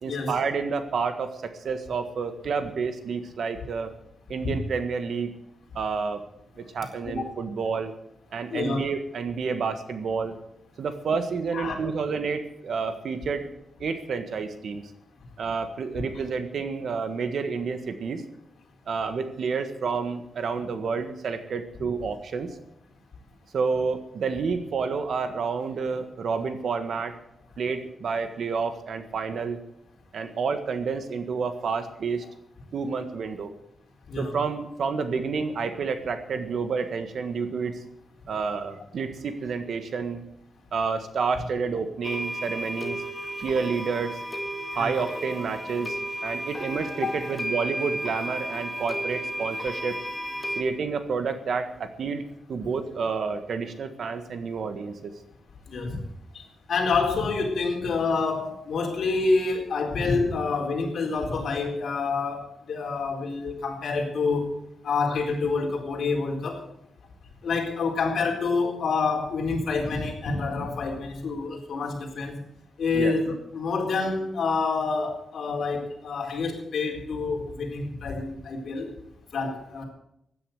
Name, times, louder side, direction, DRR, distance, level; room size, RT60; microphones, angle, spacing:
voice 1, 0.0-3.9 4.3-5.3 5.7-6.2 6.6-7.9 8.3-10.4 10.8-13.5 13.8-14.8 15.4-18.2 18.9-22.5 23.5-27.2 27.6-29.6 30.1-32.2 32.7-33.5 34.2-37.8 38.3-40.2 40.7-43.0 43.4-44.2 44.7-50.0 50.5-52.2 52.5-55.1 72.9-73.1, right 5 dB, 60° right, 9 dB, 1.6 m, -29 dB
voice 2, 8.5-8.9 11.5-11.8 34.1-34.4 44.7-45.0 47.0-47.1 55.7-56.0 56.3-64.5 64.8-66.6 67.4-72.4 72.8-78.9 79.3-79.8, left 4 dB, 65° left, 1 dB, 4.3 m, -27 dB
sound 1, 42.0-50.6, equal, 15° left, 2.0 m, -33 dB
16.0 x 10.0 x 7.9 m, 0.75 s
wide cardioid pair, 165°, 0 cm